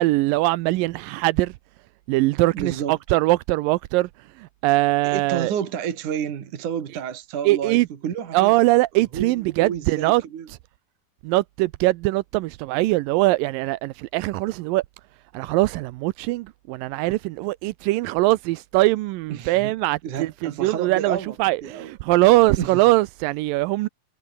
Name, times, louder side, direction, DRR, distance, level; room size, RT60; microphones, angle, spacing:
voice 1, 0.0-1.5 2.1-4.1 4.4-5.5 7.5-7.9 8.3-10.2 11.2-14.8 15.3-23.9, right 19 dB, 90° right, 2.4 m, -21 dB
voice 2, 2.5-3.0 5.0-8.5 9.0-10.5 19.3-19.7 20.0-21.4 21.6-21.9 22.6-22.8, right 8 dB, 65° right, 3.6 m, -30 dB
omnidirectional pair, 3.9 m